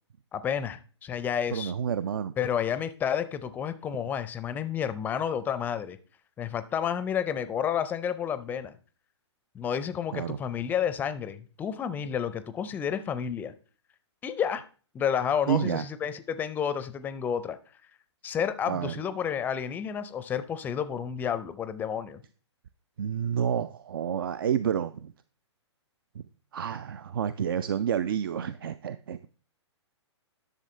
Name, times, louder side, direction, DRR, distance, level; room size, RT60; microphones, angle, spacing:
voice 1, 0.3-1.7 2.4-6.0 6.4-8.7 9.5-13.5 14.2-14.7 14.9-17.6 18.2-22.2, left 8 dB, 10° left, 0.5 m, -30 dB
voice 2, 1.5-2.3 10.1-10.4 15.5-15.9 18.7-18.9 23.0-25.1 26.1-26.2 26.5-29.3, right 8 dB, 50° right, 0.4 m, -29 dB
11.0 x 6.7 x 3.3 m
figure-of-eight pair, 120°, 15 cm